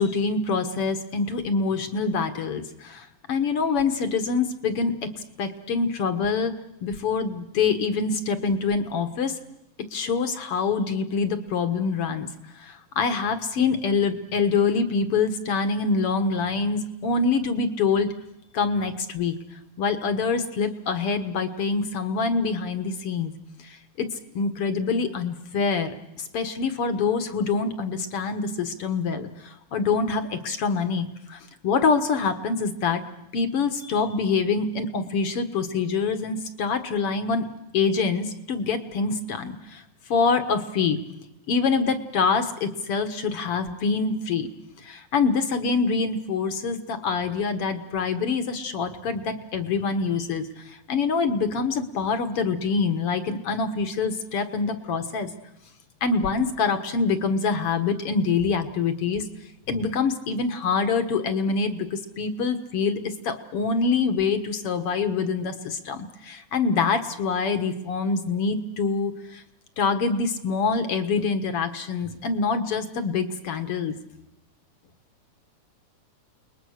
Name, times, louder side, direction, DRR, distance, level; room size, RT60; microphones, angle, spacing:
voice 1, 0.0-5.0 5.4-9.4 9.9-12.3 12.6-18.1 18.5-19.3 19.8-23.3 23.6-24.1 24.3-33.0 33.3-39.8 40.1-41.0 41.5-44.5 44.8-55.3 56.0-59.3 59.7-69.4 69.8-73.9, left 4 dB, 55° left, 9 dB, 2.0 m, -25 dB
29.5 x 21.0 x 6.5 m, 0.85 s
omnidirectional pair, 3.5 m